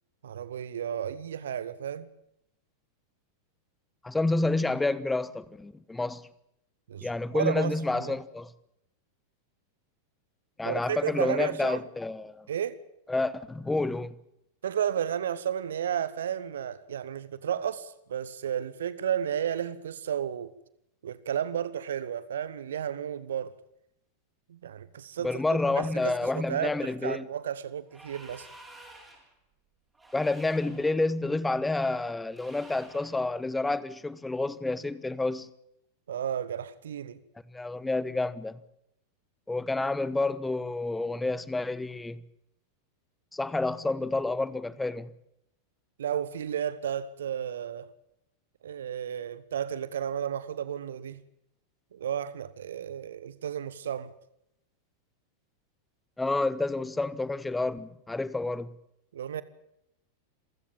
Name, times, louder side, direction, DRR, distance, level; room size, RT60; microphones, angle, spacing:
voice 1, 0.2-2.1 6.9-8.1 10.6-11.8 12.5-12.8 14.6-20.5 21.0-23.5 24.5-28.5 36.1-37.2 46.0-47.9 48.6-51.2 51.9-54.1 59.1-59.4, right 9 dB, 65° right, 1.0 m, -33 dB
voice 2, 4.0-6.3 7.0-8.5 10.6-12.5 13.1-14.1 25.2-27.3 30.1-35.5 37.5-38.6 39.5-42.2 43.3-45.1 56.2-58.7, left 2 dB, 10° left, 1.1 m, -29 dB
sound 1, 27.9-29.3 29.9-31.0 32.3-33.2, right 2 dB, 10° right, 7.3 m, -51 dB
27.5 x 16.0 x 7.2 m
figure-of-eight pair, 90°, 0 cm